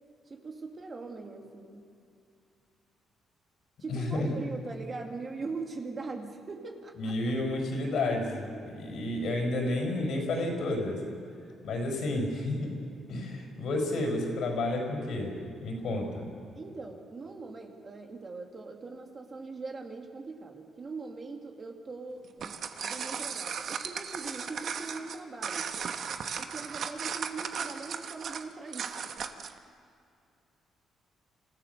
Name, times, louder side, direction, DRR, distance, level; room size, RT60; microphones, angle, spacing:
voice 1, 0.3-1.9 3.8-7.2 16.5-22.5 22.8-25.7 26.4-29.2, right 3 dB, 35° right, 2 dB, 2.5 m, -41 dB
voice 2, 3.9-4.3 7.0-11.0 11.6-12.8 13.1-16.3, left 2 dB, 70° left, 2 dB, 5.1 m, -31 dB
sound 1, 22.2-29.6, right 6 dB, 60° right, 1.2 m, -36 dB
26.5 x 15.0 x 6.8 m, 2.4 s
cardioid pair, 90°, 0 cm